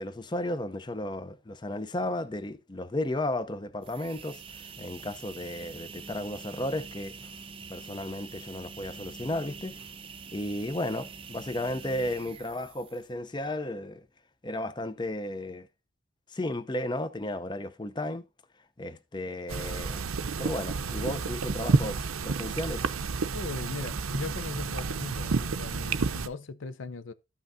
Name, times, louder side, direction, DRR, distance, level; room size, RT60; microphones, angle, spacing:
voice 1, 0.0-7.4 7.7-9.9 10.3-14.1 14.4-15.7 16.3-18.2 18.8-20.0 20.4-22.9, left 1 dB, 20° left, 0.6 m, -34 dB
sound 1, 3.7-13.2, right 5 dB, 25° right, 0.6 m, -45 dB
sound 2, 19.5-26.3, right 4 dB, 90° right, 0.6 m, -30 dB
voice 2, 23.3-27.1, left 4 dB, 65° left, 0.5 m, -39 dB
13.0 x 5.7 x 2.6 m
head